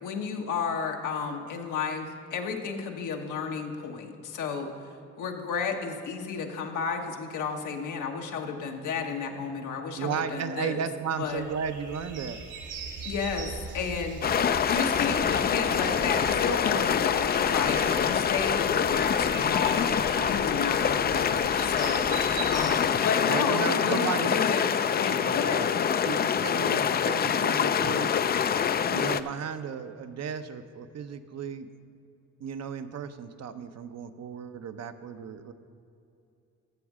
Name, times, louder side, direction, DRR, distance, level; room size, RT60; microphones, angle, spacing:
voice 1, 0.0-4.7 5.2-10.8 11.2-11.4 13.0-14.2 14.7-19.9 20.2-22.1 22.5-24.7 25.0-26.0, left 5 dB, 80° left, 3 dB, 1.2 m, -32 dB
voice 2, 10.0-12.4 23.3-24.3 25.1-25.7 26.0-28.1 28.8-31.7 32.4-35.5, right 7 dB, 60° right, 9 dB, 0.7 m, -34 dB
sound 1, 11.2-22.7, right 4 dB, 85° right, 1.8 m, -40 dB
sound 2, 14.2-29.2, left 8 dB, 35° left, 0.4 m, -25 dB
13.5 x 7.1 x 4.9 m, 2.6 s
cardioid pair, 90°, 30 cm